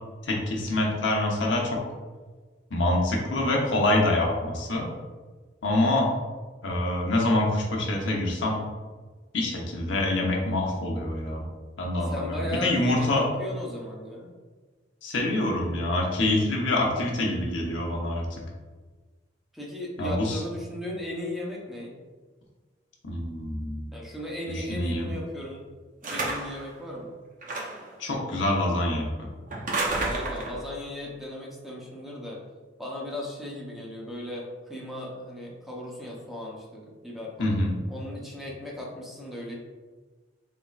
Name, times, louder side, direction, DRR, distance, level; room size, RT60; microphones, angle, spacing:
voice 1, 0.2-1.8 2.7-4.9 5.6-6.1 6.6-8.6 9.3-11.4 11.8-13.3 15.0-18.2 20.0-20.4 23.0-23.8 24.5-25.1 28.0-29.3 37.4-37.8, left 1 dB, 85° left, -1 dB, 0.9 m, -26 dB
voice 2, 12.1-14.3 19.5-21.9 23.9-25.6 26.0-27.2 30.0-32.4 32.8-37.6 37.9-39.6, left 1 dB, ahead, -3 dB, 0.7 m, -36 dB
sound 1, 26.0-26.7 27.4-27.9 29.5-30.6, right 2 dB, 45° right, 0.7 m, -30 dB
4.2 x 3.6 x 2.4 m, 1.4 s
head